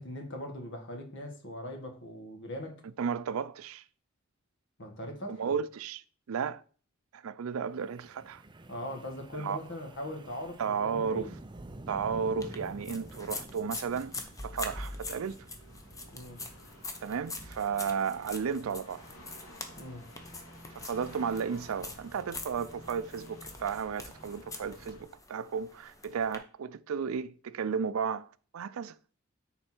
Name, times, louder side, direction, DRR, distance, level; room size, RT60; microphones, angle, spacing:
voice 1, 0.0-2.8 4.8-5.5 8.7-11.3 16.1-16.4 19.8-20.0, left 1 dB, 60° left, 1.8 m, -40 dB
voice 2, 3.0-3.8 5.3-6.6 7.1-8.4 9.3-9.6 10.6-11.3 11.9-15.5 17.0-19.0 20.7-28.3 28.5-28.9, right 6 dB, 85° right, 0.4 m, -33 dB
Wind, 7.8-18.1, right 1 dB, 20° right, 0.5 m, -49 dB
sound 1, 12.3-25.0, equal, 75° left, 2.7 m, -53 dB
sound 2, 12.4-26.4, left 3 dB, 15° left, 0.9 m, -44 dB
9.8 x 4.3 x 4.5 m
head